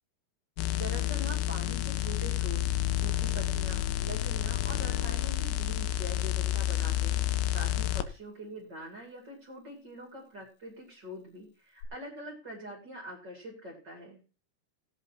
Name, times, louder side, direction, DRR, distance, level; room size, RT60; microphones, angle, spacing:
sound 1, 0.6-8.0 11.8-11.9, left 13 dB, 80° left, 2.5 m, -30 dB
voice 1, 0.7-2.6 3.0-14.2, equal, 30° right, -2 dB, 2.5 m, -44 dB
18.0 x 8.0 x 2.9 m, 0.34 s
omnidirectional pair, 4.5 m